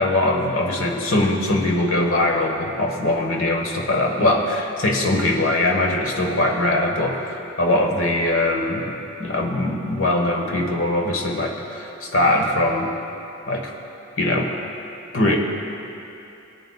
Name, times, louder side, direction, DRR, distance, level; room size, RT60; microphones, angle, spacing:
voice 1, 0.0-12.9 13.5-13.7 14.2-14.5 15.1-15.4, left 1 dB, 80° left, 2 dB, 1.2 m, -21 dB
19.5 x 9.4 x 2.3 m, 2.8 s
head